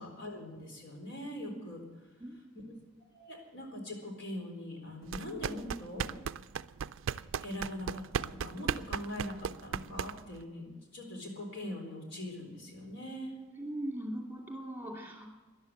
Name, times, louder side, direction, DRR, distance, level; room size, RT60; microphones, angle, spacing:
voice 1, 0.0-1.8 3.1-6.1 7.4-13.4, left 1 dB, 60° left, 1 dB, 4.1 m, -42 dB
sound 1, 5.1-10.4, right 7 dB, 65° right, 0.4 m, -36 dB
voice 2, 13.6-15.3, right 1 dB, 10° right, 0 dB, 2.5 m, -39 dB
13.5 x 11.0 x 8.0 m, 1.2 s
head